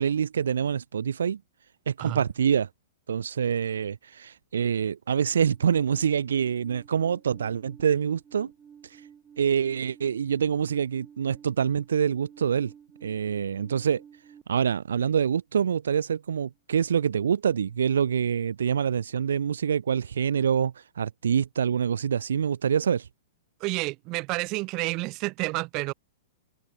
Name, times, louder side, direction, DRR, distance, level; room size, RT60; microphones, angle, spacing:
voice 1, 0.0-1.4 1.9-2.7 3.1-8.5 8.8-9.0 9.4-12.7 13.0-14.0 14.5-23.1, right 7 dB, 65° right, 1.7 m, -26 dB
Alarm, 5.5-14.4, right 8 dB, 20° right, 6.1 m, -52 dB
voice 2, 23.6-25.9, right 24 dB, 35° right, 3.7 m, -30 dB
figure-of-eight pair, 105°, 0 cm